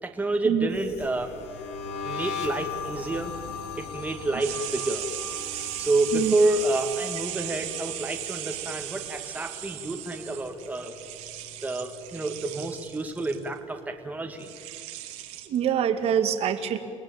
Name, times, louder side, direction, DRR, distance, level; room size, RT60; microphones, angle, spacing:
voice 1, 0.0-1.3 2.0-3.3 3.8-5.1 5.5-11.0 11.6-14.5, right 2 dB, 10° right, 3 dB, 2.3 m, -29 dB
sound 1, 0.7-9.9 10.2-10.6 10.9-12.5, left 5 dB, 65° left, 3.4 m, -39 dB
sound 2, 4.4-13.5 14.4-15.5, right 13 dB, 75° right, 2.8 m, -37 dB
voice 2, 15.5-16.8, right 9 dB, 55° right, 7 dB, 2.4 m, -24 dB
30.0 x 19.5 x 9.0 m, 2.2 s
cardioid pair, 125°, 12 cm